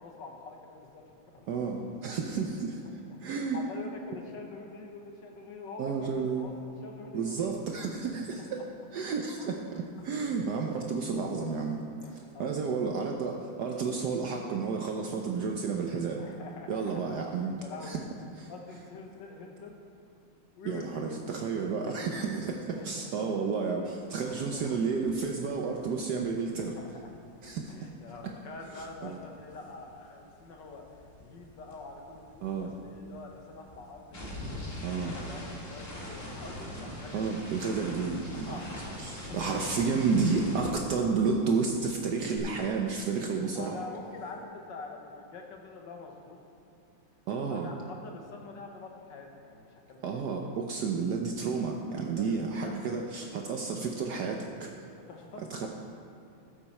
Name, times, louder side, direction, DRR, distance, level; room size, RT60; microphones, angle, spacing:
voice 1, 0.0-1.5 2.8-3.2 3.5-6.5 6.8-7.5 8.3-8.6 9.4-9.6 10.0-10.1 12.0-13.3 16.2-18.0 18.5-19.7 20.5-21.2 21.8-22.2 22.8-23.1 24.3-24.8 26.0-26.1 26.6-27.1 27.7-34.3 34.9-37.5 38.4-38.7 39.3-39.6 43.5-46.4 47.5-50.2 51.9-53.4 55.1-55.7, left 3 dB, 70° left, 2 dB, 1.7 m, -46 dB
voice 2, 1.5-2.8 3.2-3.6 5.8-6.5 7.1-8.6 8.9-11.8 12.4-16.2 16.7-17.6 17.8-18.0 18.4-18.5 20.6-26.8 27.4-27.8 28.2-28.3 29.0-29.2 32.4-32.7 34.8-35.2 37.1-38.6 39.0-43.8 47.3-47.7 50.0-54.7 55.5-55.7, right 5 dB, 65° right, 2 dB, 1.2 m, -31 dB
sound 1, 25.1-25.3 25.5-29.9 30.2-41.5 41.7-42.4, left 1 dB, 30° left, 1.9 m, -43 dB
14.5 x 7.8 x 4.2 m, 2.6 s
omnidirectional pair, 2.1 m